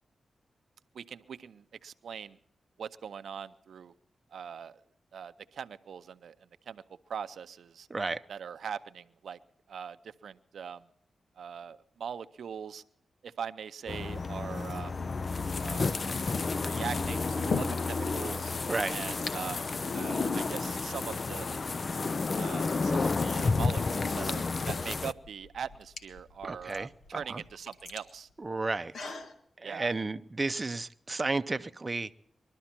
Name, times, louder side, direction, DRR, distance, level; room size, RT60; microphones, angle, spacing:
voice 1, 0.9-2.4 2.8-3.9 4.3-4.8 5.1-6.3 6.7-6.8 7.1-7.9 8.3-9.4 9.7-10.8 11.4-12.8 13.2-14.9 15.6-16.1 16.6-18.5 18.9-19.6 19.9-21.5 22.4-28.3 29.6-29.9, right 7 dB, 80° right, 12 dB, 0.5 m, -41 dB
Traffic and plants moving on the wind, 13.9-25.1, left 4 dB, 50° left, 0.5 m, -31 dB
sound 1, 16.0-16.2 17.0-18.1 18.4-18.5 18.7-19.4 20.2-20.3 20.9-21.8 23.5-23.6 24.3-29.3, left 4 dB, 75° left, 1.7 m, -40 dB
voice 2, 26.4-27.4 28.4-29.1 29.6-32.1, right 3 dB, 35° right, 10 dB, 0.6 m, -33 dB
21.5 x 12.5 x 4.4 m, 0.72 s
cardioid pair, 60°, 0 cm